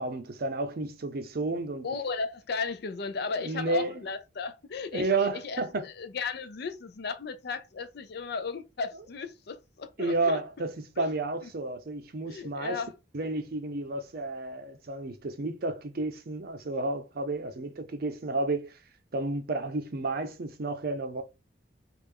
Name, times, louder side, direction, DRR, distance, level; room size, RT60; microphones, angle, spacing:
voice 1, 0.0-1.9 3.4-4.0 4.9-5.9 10.0-12.8 13.1-18.8 19.1-21.2, right 2 dB, 55° right, 0.5 m, -31 dB
voice 2, 1.8-10.4 11.0-11.1 11.4-11.5 12.3-12.9, left 4 dB, 60° left, 0.5 m, -35 dB
3.3 x 2.5 x 3.5 m
head